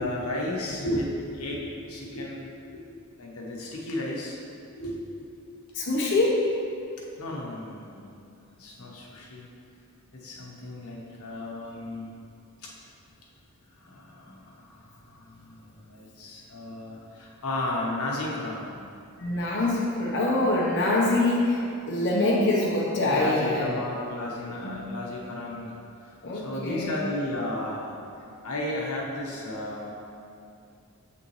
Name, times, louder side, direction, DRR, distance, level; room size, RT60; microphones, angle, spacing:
voice 1, 0.0-4.4 4.8-5.3 7.2-8.2 8.6-9.4 10.1-12.1 12.6-12.7 13.8-18.8 23.0-25.8 26.3-28.0 28.4-29.9, left 1 dB, 85° left, -3 dB, 1.2 m, -34 dB
voice 2, 5.7-6.4 19.2-21.6 21.9-23.7 24.6-24.9 26.2-26.9, left 2 dB, 55° left, -5 dB, 1.1 m, -24 dB
7.7 x 5.8 x 3.2 m, 2.5 s
head